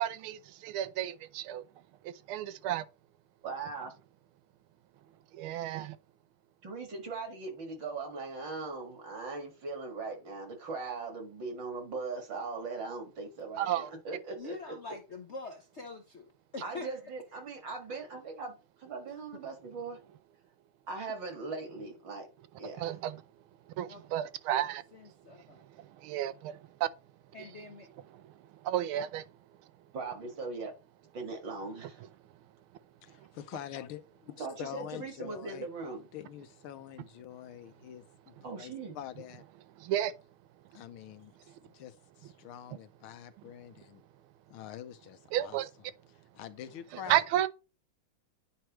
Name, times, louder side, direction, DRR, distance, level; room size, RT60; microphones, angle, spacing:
voice 1, 0.0-1.7 2.0-2.8 5.4-6.0 13.6-13.9 22.8-23.2 23.8-24.8 25.8-26.9 28.1-28.2 28.6-29.3 39.8-40.1 45.3-45.7 46.9-47.5, right 12 dB, 80° right, 1.5 m, -32 dB
voice 2, 3.4-3.9 6.6-14.6 16.6-20.0 20.9-22.3 22.6-22.9 29.9-30.7 31.1-32.0 34.4-36.1 38.4-39.0, right 4 dB, 60° right, 2.5 m, -40 dB
voice 3, 14.4-16.9 22.8-22.9 23.9-24.0 24.9-25.6 27.3-27.9, left 3 dB, 55° left, 0.7 m, -45 dB
voice 4, 33.0-35.7 36.1-39.4 40.7-44.0 44.5-45.6 46.1-47.2, left 11 dB, 80° left, 1.5 m, -46 dB
10.0 x 4.5 x 3.0 m
omnidirectional pair, 2.3 m